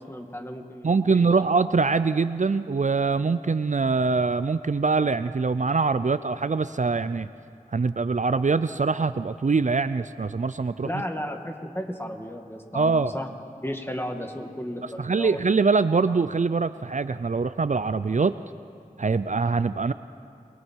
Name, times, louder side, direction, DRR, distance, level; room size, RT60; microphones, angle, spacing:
voice 1, 0.0-1.4 10.8-13.3 13.6-15.4, equal, 15° left, 3 dB, 2.1 m, -34 dB
voice 2, 0.8-7.3 7.7-10.9 12.7-13.2 15.0-18.3 19.0-19.9, right 4 dB, 55° right, 13 dB, 0.4 m, -23 dB
28.5 x 22.0 x 4.6 m, 2.7 s
wide cardioid pair, 45°, 15 cm